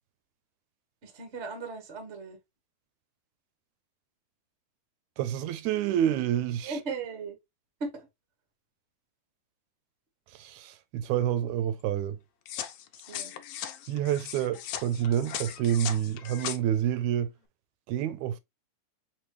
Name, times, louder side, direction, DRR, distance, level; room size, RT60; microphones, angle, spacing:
voice 1, 1.0-2.4 6.6-7.4 7.8-8.1 12.9-13.3, right 4 dB, 60° right, 0.7 m, -37 dB
voice 2, 5.2-6.8 10.3-12.2 13.9-17.3 17.9-18.4, right 10 dB, 80° right, 1.9 m, -28 dB
sound 1, 12.5-16.6, left 11 dB, 80° left, 1.3 m, -38 dB
5.3 x 3.0 x 3.1 m
omnidirectional pair, 3.5 m